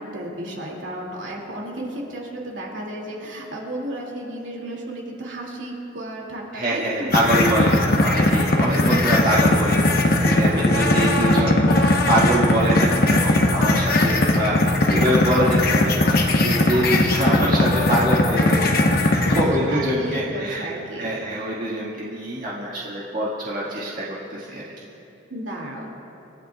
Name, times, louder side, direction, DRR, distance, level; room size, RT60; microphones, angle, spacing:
voice 1, 0.0-7.4 10.9-11.4 19.3-21.2 25.3-25.9, right 1 dB, 70° right, -2 dB, 2.5 m, -33 dB
voice 2, 6.5-14.6 14.9-20.7 21.0-24.6, right 1 dB, 40° right, -6 dB, 1.8 m, -24 dB
sound 1, 7.1-19.4, left 2 dB, 50° left, 1.1 m, -19 dB
27.5 x 13.5 x 2.4 m, 2.9 s
head